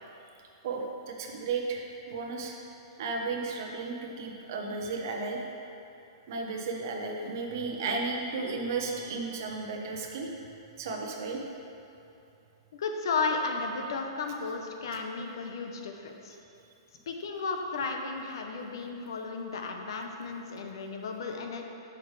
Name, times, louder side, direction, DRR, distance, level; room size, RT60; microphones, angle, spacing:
voice 1, 0.6-2.5 3.0-5.4 6.3-10.3 10.8-11.4, right 4 dB, 45° right, 1 dB, 0.9 m, -34 dB
voice 2, 12.7-16.4 17.1-21.6, left 4 dB, 60° left, 3 dB, 0.8 m, -34 dB
9.5 x 6.0 x 3.3 m, 2.8 s
hypercardioid pair, 175°, 3 cm